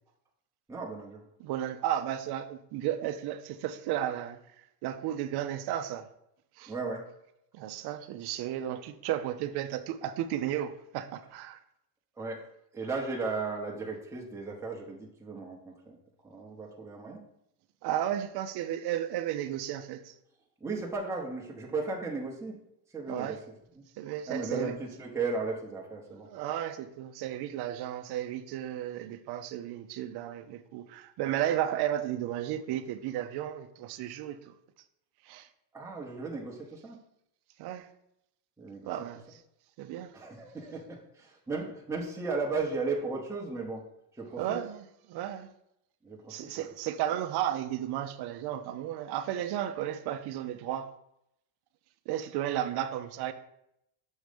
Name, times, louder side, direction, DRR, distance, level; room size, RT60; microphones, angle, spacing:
voice 1, 0.7-1.2 6.7-7.1 12.2-12.5 12.7-16.0 16.2-17.2 20.6-22.6 22.9-23.4 23.7-23.8 24.3-26.3 35.7-37.0 38.6-38.9 40.1-43.8 44.1-44.6 46.0-46.7, right 3 dB, 5° right, 0.9 m, -35 dB
voice 2, 1.4-4.4 4.8-6.1 6.6-6.7 7.5-11.6 17.8-20.1 23.1-23.4 24.0-24.7 26.3-34.5 35.3-35.5 37.6-37.9 38.9-39.4 39.8-40.1 44.4-45.5 46.3-50.9 52.1-53.3, right 11 dB, 50° right, 0.6 m, -33 dB
6.4 x 3.1 x 5.1 m
cardioid pair, 125°, 49 cm